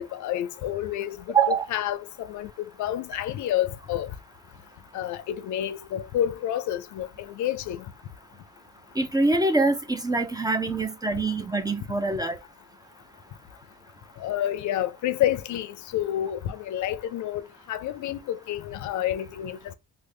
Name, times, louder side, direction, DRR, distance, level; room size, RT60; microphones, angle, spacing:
voice 1, 0.0-4.1 4.9-7.8 14.2-19.7, left 12 dB, 75° left, 0.5 m, -29 dB
voice 2, 1.3-1.7 9.0-12.4, right 3 dB, 15° right, 0.4 m, -24 dB
3.5 x 2.1 x 3.2 m
cardioid pair, 90°, 30 cm